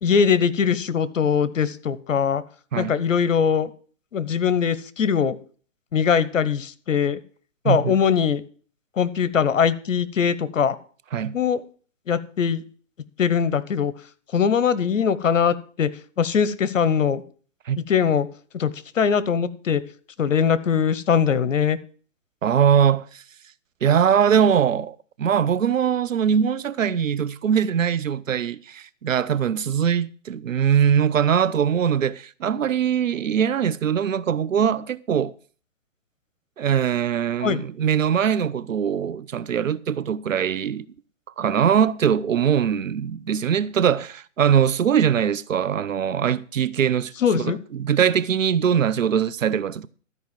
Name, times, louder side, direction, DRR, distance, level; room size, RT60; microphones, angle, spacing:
voice 1, 0.0-2.4 2.8-3.7 4.1-5.4 5.9-7.2 7.6-8.4 9.0-10.8 11.3-11.6 12.1-12.6 13.2-13.9 14.3-15.9 16.2-17.2 17.9-18.3 18.5-19.8 20.2-21.8 37.4-37.6 47.2-47.6, left 7 dB, 80° left, 1.0 m, -21 dB
voice 2, 7.6-8.0 11.1-11.4 17.7-17.8 22.4-23.2 23.8-35.3 36.6-40.9 41.4-49.9, right 8 dB, 90° right, 0.7 m, -22 dB
12.5 x 4.9 x 7.5 m
hypercardioid pair, 145°, 38 cm